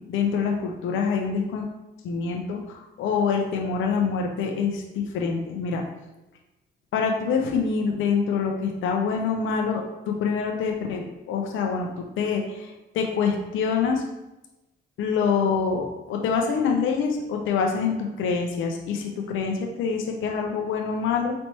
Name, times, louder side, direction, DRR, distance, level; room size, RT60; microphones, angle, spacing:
voice 1, 0.0-1.7 2.0-5.8 6.9-14.0 15.0-21.3, left 5 dB, 80° left, 2 dB, 0.6 m, -26 dB
4.2 x 3.3 x 2.9 m, 0.99 s
cardioid pair, 90°, 20 cm